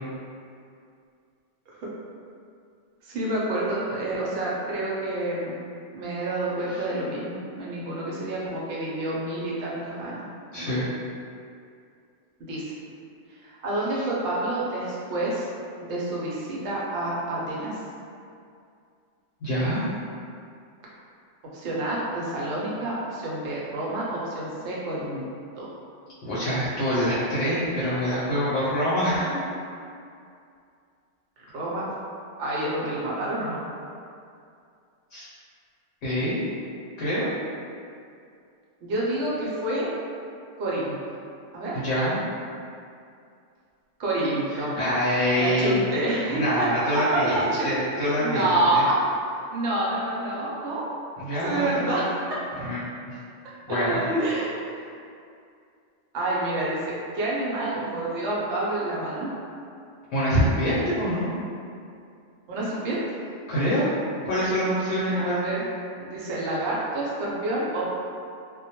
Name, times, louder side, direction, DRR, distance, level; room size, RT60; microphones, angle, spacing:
voice 1, 3.0-5.6 5.9-10.3 10.6-10.8 12.4-12.6 13.4-15.5 15.8-17.8 21.5-25.3 25.6-25.7 31.5-31.9 32.4-33.6 38.8-39.9 40.6-41.0 41.5-41.7 44.0-44.8 45.3-46.7 47.0-47.8 48.2-49.0 49.5-50.9 51.4-52.4 53.7-54.7 56.1-59.3 62.5-63.0 65.2-65.6 66.0-67.8, right 2 dB, 75° right, -6 dB, 0.9 m, -28 dB
voice 2, 10.5-10.8 13.9-14.0 19.4-19.8 26.2-29.4 35.1-35.3 36.0-36.5 37.0-37.3 41.7-42.2 44.8-45.8 46.3-48.8 51.2-51.9 52.6-52.8 53.1-53.2 53.7-54.0 60.1-61.3 63.5-63.9 64.2-65.4, equal, 70° left, -9 dB, 0.8 m, -25 dB
2.2 x 2.1 x 2.8 m, 2.4 s
omnidirectional pair, 1.3 m